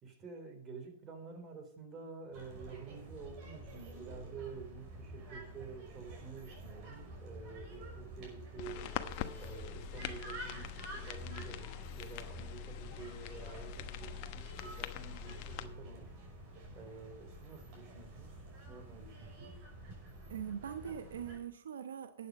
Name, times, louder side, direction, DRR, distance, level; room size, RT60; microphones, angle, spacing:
voice 1, 0.0-8.9 9.4-16.1 16.7-18.3 18.7-19.7, right 4 dB, 30° right, 3.6 m, -49 dB
sound 1, 2.3-21.4, right 1 dB, 45° right, 5.5 m, -49 dB
sound 2, 8.6-15.7, left 14 dB, 50° left, 1.1 m, -44 dB
voice 2, 20.3-22.3, right 8 dB, 80° right, 0.9 m, -42 dB
11.5 x 8.6 x 5.3 m
hypercardioid pair, 115°, 0 cm